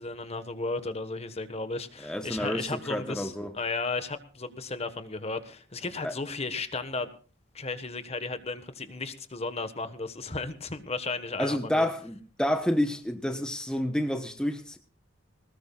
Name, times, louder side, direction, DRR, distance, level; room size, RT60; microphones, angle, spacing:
voice 1, 0.0-7.1 7.5-11.9, left 3 dB, 30° left, 1.4 m, -34 dB
voice 2, 2.0-3.5 6.0-6.1 11.4-14.8, left 1 dB, 5° left, 1.1 m, -29 dB
21.0 x 19.5 x 2.4 m
head